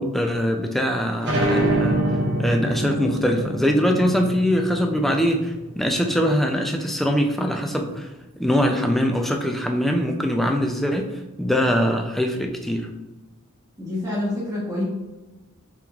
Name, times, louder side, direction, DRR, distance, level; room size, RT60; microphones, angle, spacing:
voice 1, 0.0-2.0 2.4-8.1 8.4-12.9, equal, ahead, 3 dB, 0.3 m, -22 dB
sound 1, 1.2-6.5, right 1 dB, 55° right, 1.0 m, -25 dB
voice 2, 13.8-14.8, left 1 dB, 15° right, -8 dB, 1.1 m, -27 dB
5.1 x 3.0 x 2.3 m, 1.1 s
head